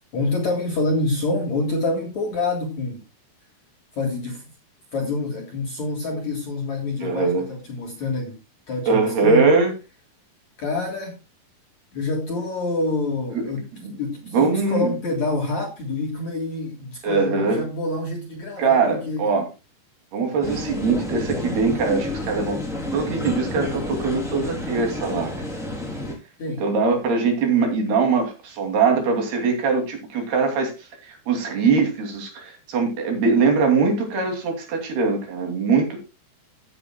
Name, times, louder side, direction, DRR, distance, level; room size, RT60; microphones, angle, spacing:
voice 1, 0.1-3.0 4.0-4.5 4.9-8.4 8.7-9.5 10.6-11.2 11.9-13.7 14.0-19.3 20.2-20.4 26.4-26.6, left 2 dB, 50° left, 2.9 m, -27 dB
voice 2, 7.0-7.4 8.9-9.7 13.3-13.5 14.3-14.9 17.0-17.6 18.6-19.5 20.1-22.6 22.9-25.3 26.6-30.7 31.1-36.0, right 4 dB, 65° right, 4.6 m, -21 dB
sound 1, 20.4-26.1, left 1 dB, ahead, 3.2 m, -30 dB
16.0 x 8.8 x 2.2 m
omnidirectional pair, 4.9 m